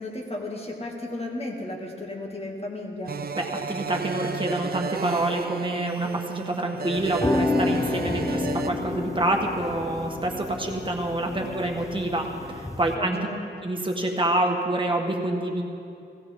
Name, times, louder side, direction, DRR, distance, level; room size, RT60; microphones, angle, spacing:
voice 1, 0.0-3.1 12.8-13.4, left 2 dB, 30° left, 0 dB, 1.9 m, -34 dB
sound 1, 3.0-8.7, right 5 dB, 55° right, 0.5 m, -33 dB
voice 2, 3.3-13.2 13.6-15.6, right 1 dB, 25° right, 1 dB, 1.6 m, -27 dB
sound 2, 7.0-12.9, left 3 dB, 15° left, 0.8 m, -30 dB
17.0 x 16.5 x 3.7 m, 2.6 s
wide cardioid pair, 130°, 19 cm